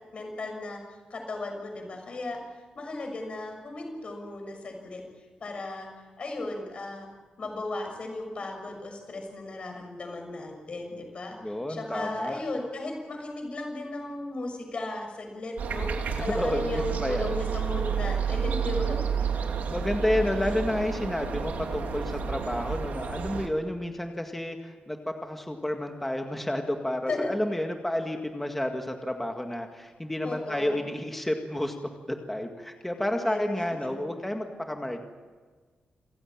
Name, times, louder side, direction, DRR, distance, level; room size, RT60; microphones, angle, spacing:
voice 1, 0.1-2.4 2.7-5.0 5.4-5.9 6.2-7.1 7.4-15.9 16.2-19.1 20.2-20.6 27.1-27.3 30.2-30.8 33.2-34.1, left 2 dB, 40° left, 3 dB, 6.5 m, -35 dB
voice 2, 11.4-12.4 16.2-17.3 19.7-31.7 32.1-35.1, left 1 dB, 5° left, 4 dB, 1.9 m, -30 dB
sound 1, 15.6-23.5, right 6 dB, 75° right, 2.8 m, -30 dB
28.0 x 16.0 x 8.9 m, 1.4 s
wide cardioid pair, 150°, 3 cm